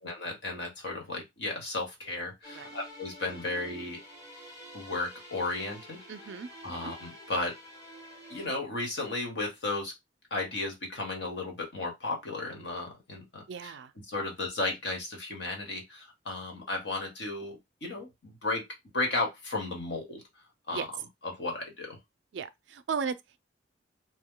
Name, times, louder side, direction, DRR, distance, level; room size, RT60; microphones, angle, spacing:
voice 1, 0.0-4.0 4.7-6.0 6.6-7.5 8.3-9.9 10.3-13.7 14.1-18.6 18.9-20.2 20.7-20.9 21.2-22.0, left 2 dB, 70° left, 1.3 m, -34 dB
sound 1, 2.4-8.5, equal, 15° left, 1.1 m, -48 dB
voice 2, 6.1-6.5 6.8-6.9 13.5-13.9 20.7-20.9 22.3-23.4, right 6 dB, 75° right, 0.4 m, -36 dB
2.9 x 2.2 x 3.7 m
head